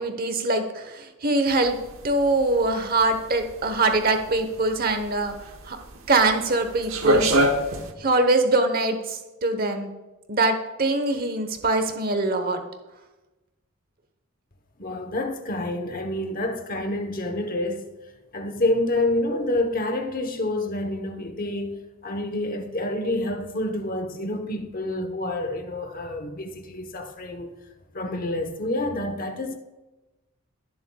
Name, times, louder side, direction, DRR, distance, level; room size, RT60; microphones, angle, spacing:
voice 1, 0.0-1.8 2.0-5.4 5.6-5.8 6.1-7.4 8.0-9.9 10.3-12.6, right 2 dB, 40° right, 1.0 m, -23 dB
sound 1, 1.5-7.9, equal, 75° right, 1.0 m, -26 dB
voice 2, 14.8-17.9 18.3-27.5 27.9-29.6, left 1 dB, 40° left, 1.0 m, -28 dB
17.5 x 7.1 x 2.3 m
head